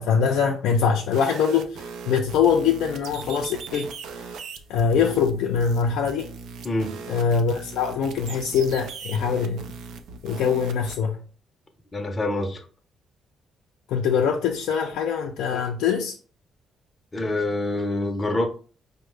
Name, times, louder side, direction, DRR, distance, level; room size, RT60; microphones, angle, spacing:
voice 1, 0.0-3.9 4.2-4.3 4.7-6.3 7.1-9.7 10.2-11.2 13.9-16.2, left 6 dB, 90° left, 0.4 m, -23 dB
sound 1, 1.0-10.9, right 5 dB, 80° right, 0.4 m, -39 dB
voice 2, 6.6-7.0 11.9-12.7 17.1-18.5, left 2 dB, 25° left, 0.5 m, -26 dB
4.9 x 2.1 x 3.2 m
cardioid pair, 90°, 0 cm